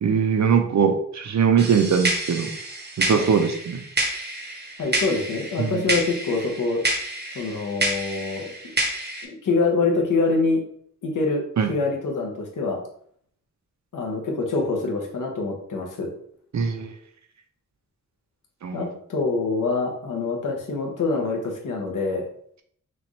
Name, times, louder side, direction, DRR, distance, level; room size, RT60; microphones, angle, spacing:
voice 1, 0.0-2.5 3.0-3.8 5.6-5.8 11.6-11.7 16.5-16.9 18.6-18.9, right 6 dB, 60° right, 6 dB, 0.7 m, -21 dB
sound 1, 1.6-9.3, right 2 dB, 35° right, 0.8 m, -29 dB
voice 2, 4.8-6.8 7.3-8.7 9.4-10.6 11.0-11.4 11.7-12.8 13.9-16.1 18.7-22.3, left 3 dB, 75° left, 1 dB, 1.1 m, -25 dB
6.0 x 2.5 x 3.1 m, 0.63 s
wide cardioid pair, 130°, 32 cm